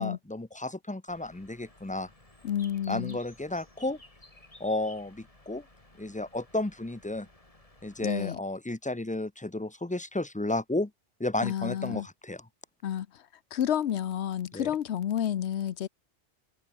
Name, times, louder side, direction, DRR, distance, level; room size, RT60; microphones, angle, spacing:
voice 1, 0.0-2.1 2.9-4.0 4.6-5.6 6.0-7.3 7.8-10.9 11.2-12.5 14.5-14.7, left 2 dB, 10° left, 0.5 m, -33 dB
Bird, 1.1-8.3, left 2 dB, 30° left, 3.3 m, -56 dB
voice 2, 2.4-3.2 8.0-8.4 11.4-12.1 12.8-13.1 13.5-15.9, left 10 dB, 65° left, 1.0 m, -30 dB
omnidirectional pair, 1.2 m